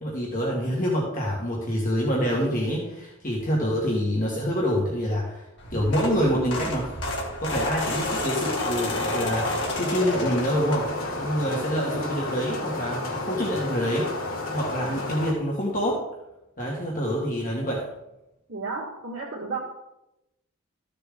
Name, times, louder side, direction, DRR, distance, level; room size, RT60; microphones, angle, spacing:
voice 1, 0.0-5.4 5.7-6.9 7.4-10.9 11.1-14.3 14.5-16.0 16.6-17.8, equal, 40° left, -3 dB, 1.9 m, -26 dB
sound 1, 5.6-11.2 11.7-11.9 13.2-13.3 13.5-13.6 14.0-14.1, left 2 dB, 55° left, 2.4 m, -31 dB
sound 2, 7.7-15.3, left 2 dB, 80° left, 3.1 m, -32 dB
voice 2, 18.5-19.6, right 4 dB, 70° right, -5 dB, 2.2 m, -32 dB
14.0 x 6.9 x 3.9 m, 0.90 s
head